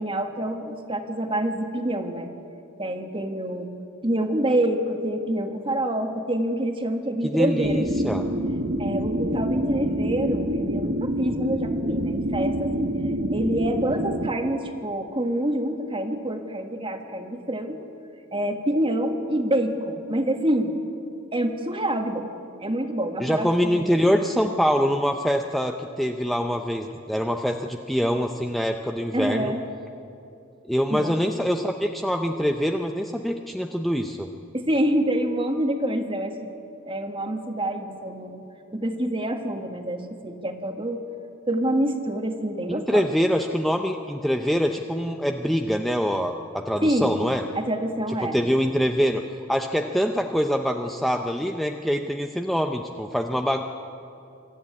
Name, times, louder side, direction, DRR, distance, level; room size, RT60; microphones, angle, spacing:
voice 1, 0.0-2.3 2.8-3.7 4.0-7.9 8.8-12.9 13.3-17.9 18.3-20.7 21.3-22.3 22.6-24.5 29.1-29.6 30.9-31.2 34.5-36.5 36.8-38.4 38.7-41.0 41.5-43.1 46.8-47.1 47.5-48.4, right 1 dB, 25° right, 5 dB, 1.6 m, -26 dB
voice 2, 7.3-8.2 23.2-29.5 30.7-34.3 42.7-47.4 48.2-49.2 49.5-53.6, equal, ahead, 4 dB, 0.6 m, -24 dB
sound 1, 7.6-14.3, right 1 dB, 50° right, 1.2 m, -26 dB
23.5 x 14.0 x 9.5 m, 2.7 s
head